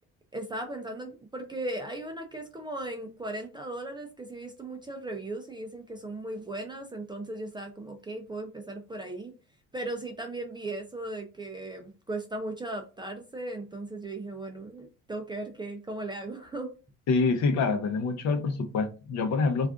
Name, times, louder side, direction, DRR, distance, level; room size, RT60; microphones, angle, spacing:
voice 1, 0.3-9.3 9.7-16.7, right 2 dB, 15° right, 0.3 m, -37 dB
voice 2, 17.1-19.7, left 4 dB, 60° left, 0.7 m, -26 dB
2.4 x 2.4 x 3.5 m
cardioid pair, 135°, 32 cm